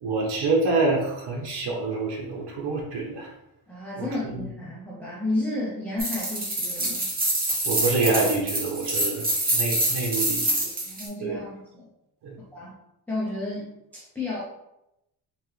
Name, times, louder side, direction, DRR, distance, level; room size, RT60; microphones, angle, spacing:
voice 1, 0.0-3.3 4.0-4.5 7.6-9.2 9.5-10.5 11.2-11.4 12.2-12.3, right 3 dB, 70° right, -2 dB, 0.9 m, -26 dB
voice 2, 3.7-7.1 10.8-11.9 12.5-12.7 13.1-14.4, left 2 dB, 5° left, -7 dB, 0.5 m, -32 dB
sound 1, 6.0-11.1, right 1 dB, 20° right, 0.9 m, -26 dB
3.6 x 3.0 x 3.1 m, 0.87 s
wide cardioid pair, 175°, 41 cm